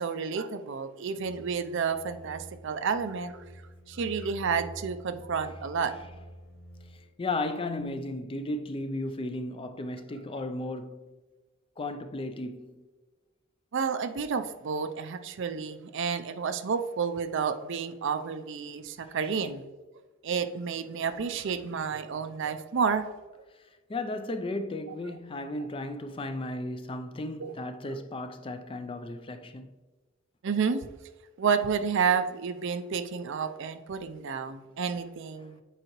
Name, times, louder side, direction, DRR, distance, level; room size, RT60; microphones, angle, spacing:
voice 1, 0.0-3.4 3.9-5.9 13.7-19.6 20.2-23.1 27.4-27.5 27.9-28.0 30.4-30.8 31.4-35.6, right 6 dB, 60° right, 0.5 m, -30 dB
sound 1, 1.1-7.1, equal, 40° left, 1.8 m, -48 dB
voice 2, 7.2-11.1 11.8-12.8 19.0-19.1 23.9-29.7, left 2 dB, 25° left, 0.4 m, -35 dB
7.9 x 4.7 x 3.0 m
head